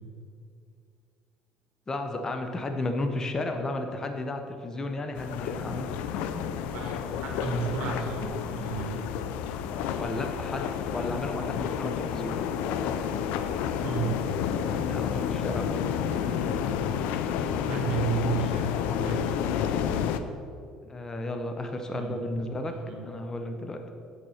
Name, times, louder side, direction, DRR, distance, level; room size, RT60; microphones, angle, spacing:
voice 1, 1.9-6.5 9.7-12.4 14.9-15.8 20.8-22.7 23.0-23.8, left 2 dB, 25° left, 5 dB, 0.8 m, -33 dB
sound 1, 5.2-20.2, left 8 dB, 80° left, 0.4 m, -30 dB
voice 2, 6.7-9.0 13.8-14.2 17.6-19.3 21.9-22.2 22.8-23.0, right 5 dB, 70° right, 2 dB, 1.4 m, -32 dB
6.9 x 4.5 x 5.7 m, 2.3 s
supercardioid pair, 95°, 2 cm